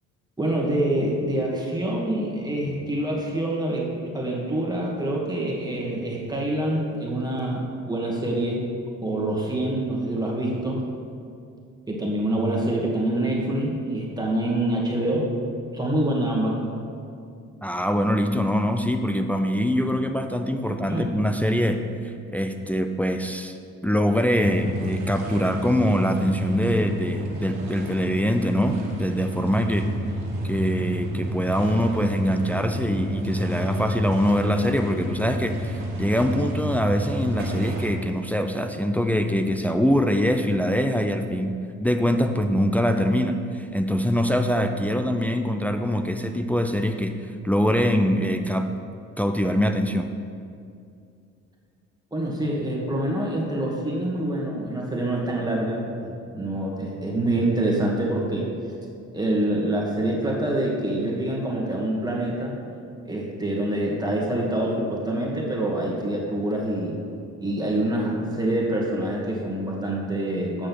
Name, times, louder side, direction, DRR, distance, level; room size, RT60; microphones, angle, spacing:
voice 1, 0.4-3.9 4.1-8.6 9.0-10.8 11.9-15.3 15.7-16.6 20.9-21.1 52.1-58.5 59.1-62.5 63.0-67.0 67.4-70.7, right 1 dB, 15° right, -3 dB, 2.3 m, -26 dB
voice 2, 17.6-23.6 23.8-29.9 30.4-48.7 49.2-50.1, equal, 5° left, 5 dB, 0.5 m, -23 dB
sound 1, 24.4-37.9, right 1 dB, 90° right, 1.6 m, -30 dB
7.7 x 6.3 x 6.3 m, 2.4 s
cardioid pair, 80°, 29 cm